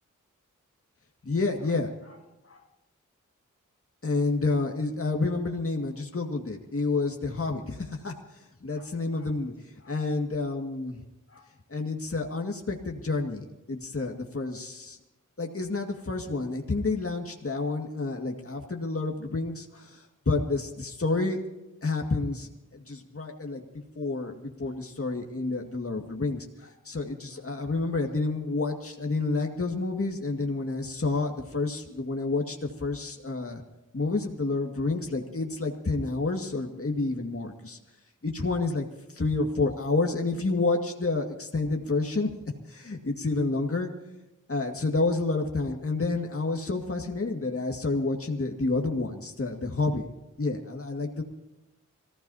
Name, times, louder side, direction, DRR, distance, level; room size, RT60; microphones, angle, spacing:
voice 1, 1.2-2.2 2.4-2.6 4.0-8.1 8.6-9.5 9.9-11.0 11.3-11.4 11.7-15.0 15.4-21.4 21.8-23.6 24.0-33.6 33.9-37.8 38.2-38.9 39.1-42.3 42.7-43.9 44.5-50.1 50.4-51.2, left 3 dB, 45° left, 2 dB, 2.1 m, -29 dB
26.5 x 15.5 x 2.8 m, 0.97 s
cardioid pair, 45°, 31 cm